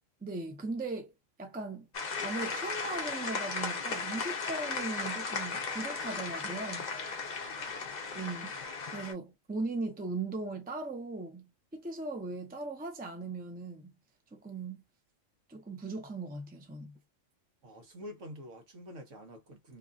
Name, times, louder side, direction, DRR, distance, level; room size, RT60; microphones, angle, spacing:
voice 1, 0.2-1.9 2.2-6.9 8.1-8.5 8.9-13.9 14.3-14.8 15.5-17.0, right 3 dB, 10° right, 0.5 m, -38 dB
sound 1, 1.9-9.1, left 4 dB, 40° left, 0.7 m, -36 dB
voice 2, 7.3-8.0 17.6-19.8, equal, 70° right, 1.3 m, -48 dB
3.0 x 2.4 x 2.3 m
omnidirectional pair, 1.4 m